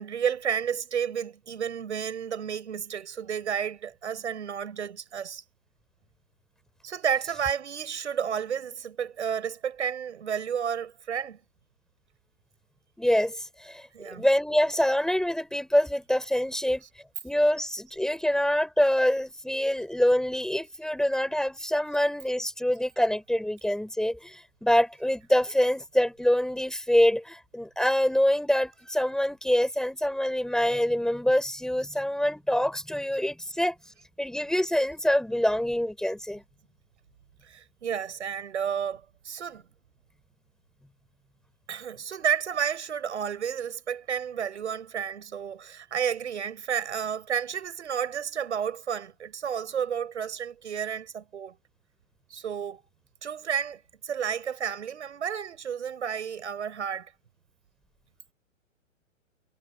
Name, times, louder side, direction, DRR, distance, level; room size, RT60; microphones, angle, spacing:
voice 1, 0.0-5.4 6.8-11.4 13.9-14.2 16.8-16.9 37.4-39.7 41.7-51.6 52.3-52.8 53.2-57.1, right 8 dB, 60° right, 7.9 m, -31 dB
voice 2, 13.0-16.8 17.2-33.7 34.2-36.4, left 1 dB, ahead, 4.4 m, -25 dB
figure-of-eight pair, 120°, 40 cm